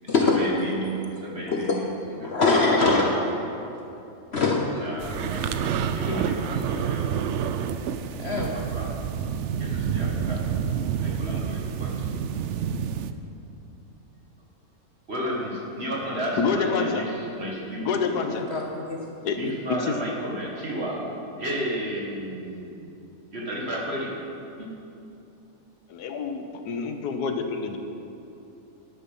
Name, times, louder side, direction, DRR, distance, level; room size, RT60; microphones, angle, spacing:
voice 1, 0.0-2.5 2.8-3.2 4.7-5.6 5.9-7.2 8.1-9.0 9.6-10.5 11.0-12.2 15.1-18.3 19.3-22.9 23.3-24.1 24.6-24.7, equal, 40° right, -2 dB, 2.0 m, -33 dB
voice 2, 1.5-1.8 2.2-3.1 4.3-4.9 6.1-6.2 8.2-8.5 18.3-19.0, left 3 dB, 50° left, 0 dB, 1.0 m, -23 dB
sound 1, 5.0-13.1, right 7 dB, 70° right, 0.7 m, -28 dB
voice 3, 16.4-17.0 17.8-18.4 19.2-19.4 19.8-19.9 25.9-27.8, left 5 dB, 80° left, 6 dB, 1.4 m, -27 dB
12.5 x 9.4 x 5.5 m, 2.8 s
omnidirectional pair, 1.7 m